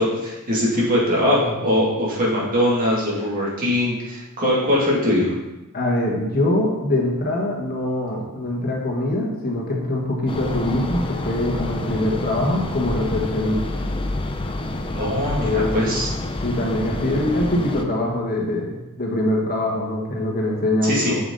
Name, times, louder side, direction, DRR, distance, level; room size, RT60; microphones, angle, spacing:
voice 1, 0.0-5.3 14.9-16.1 20.8-21.2, left 1 dB, 40° right, -6 dB, 2.6 m, -21 dB
voice 2, 5.7-13.8 15.4-15.9 16.4-21.2, left 1 dB, 45° left, -1 dB, 1.5 m, -23 dB
sound 1, 10.3-17.8, left 2 dB, 25° left, 0.6 m, -28 dB
7.1 x 7.0 x 4.1 m, 1.0 s
head